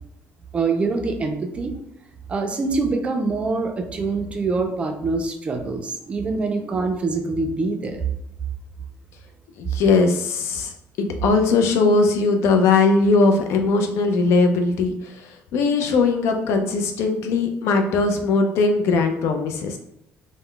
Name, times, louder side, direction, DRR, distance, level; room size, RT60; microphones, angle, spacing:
voice 1, 0.5-1.7 2.3-8.0, right 3 dB, 25° right, 4 dB, 0.3 m, -24 dB
voice 2, 9.6-10.7 11.0-19.8, left 3 dB, 70° left, 5 dB, 0.4 m, -20 dB
2.2 x 2.0 x 3.6 m, 0.82 s
cardioid pair, 145°, 5 cm